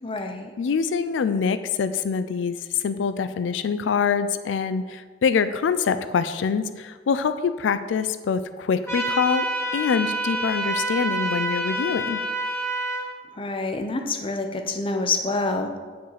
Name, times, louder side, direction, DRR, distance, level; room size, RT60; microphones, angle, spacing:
voice 1, 0.0-0.5 13.4-15.7, left 3 dB, 30° left, 5 dB, 0.6 m, -27 dB
voice 2, 0.6-9.5 9.7-12.2, left 6 dB, 85° left, 12 dB, 0.4 m, -25 dB
sound 1, 8.9-13.0, right 1 dB, 15° left, 1.5 m, -27 dB
8.2 x 5.2 x 4.0 m, 1.5 s
head